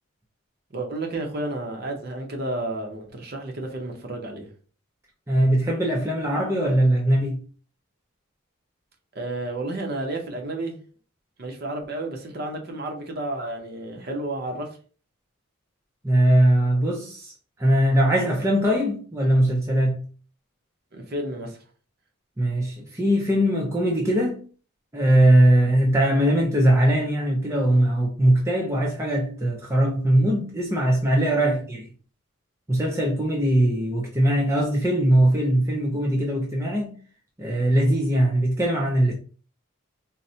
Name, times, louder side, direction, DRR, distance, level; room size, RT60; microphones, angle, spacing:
voice 1, 0.7-4.5 9.1-10.8 11.4-14.7 20.9-21.6 31.4-31.6, right 2 dB, 45° right, 0.7 m, -31 dB
voice 2, 5.3-7.4 16.0-17.3 17.6-20.0 22.4-24.4 24.9-31.9 32.7-37.0 37.4-39.1, right 1 dB, 15° right, 0.4 m, -21 dB
4.0 x 2.1 x 2.7 m
head